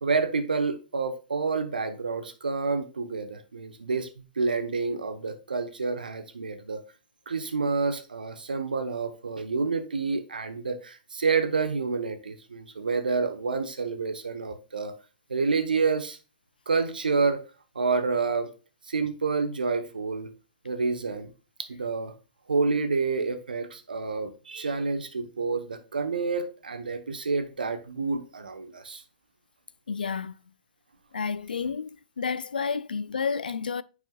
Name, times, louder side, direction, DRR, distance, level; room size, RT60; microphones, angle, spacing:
voice 1, 0.0-6.8 7.3-14.9 15.3-16.2 16.7-17.4 17.7-18.5 18.9-20.3 20.6-21.3 21.6-22.1 22.5-29.0, right 4 dB, 85° right, 1.0 m, -28 dB
voice 2, 29.9-30.3 31.1-31.9 32.2-33.8, left 5 dB, 85° left, 0.4 m, -30 dB
9.0 x 4.8 x 2.3 m
hypercardioid pair, 110°, 5 cm